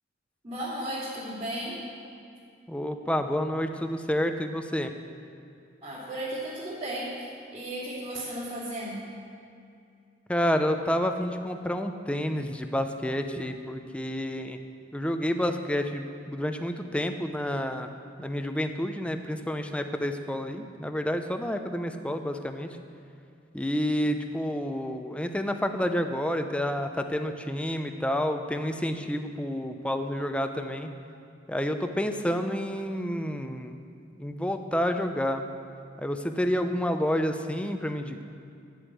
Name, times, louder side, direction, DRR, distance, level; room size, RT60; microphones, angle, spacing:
voice 1, 0.4-1.8 5.8-7.3 7.5-9.0, right 1 dB, 35° right, -13 dB, 3.1 m, -34 dB
voice 2, 2.7-4.9 10.3-14.6 14.9-17.9 18.2-22.7 23.5-30.9 31.5-33.7 34.2-35.4 36.0-38.2, equal, 5° left, 6 dB, 0.6 m, -29 dB
11.0 x 8.1 x 7.8 m, 2.4 s
head